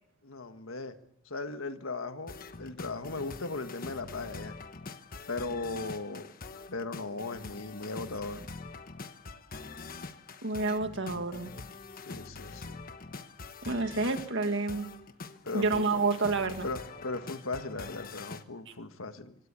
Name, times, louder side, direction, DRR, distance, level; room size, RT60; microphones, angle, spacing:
voice 1, 0.2-0.9 1.3-4.6 5.3-6.3 6.7-8.5 12.1-12.8 15.4-16.0 16.6-19.4, left 3 dB, 75° left, 8 dB, 1.6 m, -37 dB
sound 1, 2.3-18.4, left 3 dB, 45° left, 1.2 m, -44 dB
voice 2, 10.4-11.5 13.6-14.8 15.5-16.7, right 3 dB, 60° right, 7 dB, 2.0 m, -29 dB
25.5 x 17.5 x 8.4 m, 0.83 s
head